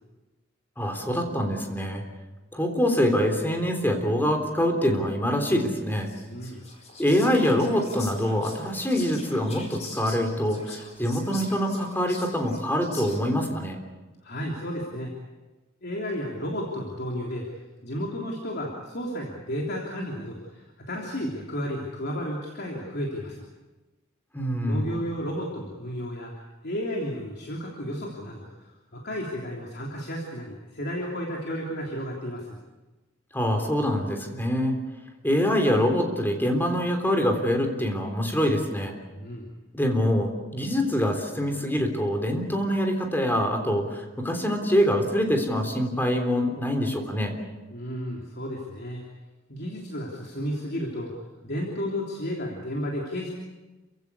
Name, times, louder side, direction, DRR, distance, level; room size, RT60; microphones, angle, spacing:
voice 1, 0.8-2.0 2.5-6.1 7.0-13.8 24.3-24.9 33.3-34.7 35.2-38.9 39.7-47.4, equal, 10° left, 4 dB, 3.5 m, -25 dB
Whispering, 5.9-13.4, left 3 dB, 35° left, 4.7 m, -43 dB
voice 2, 6.3-6.6 14.2-15.1 15.8-17.5 17.8-23.5 24.7-26.3 26.6-32.6 39.2-39.5 47.7-49.0 49.5-51.1 51.4-53.3, equal, 55° left, -1 dB, 3.2 m, -33 dB
29.0 x 16.0 x 8.4 m, 1.2 s
head